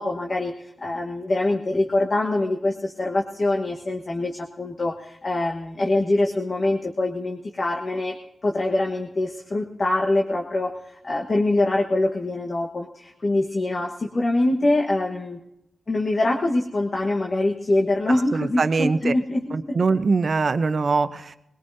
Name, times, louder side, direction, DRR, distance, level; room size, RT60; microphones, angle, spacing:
voice 1, 0.0-8.2 8.4-15.4 15.9-19.8, left 2 dB, 45° left, 1 dB, 1.2 m, -24 dB
voice 2, 18.3-19.1 19.5-21.4, right 4 dB, 55° right, 12 dB, 0.7 m, -22 dB
21.0 x 18.5 x 2.7 m, 0.86 s
cardioid pair, 55°, 0 cm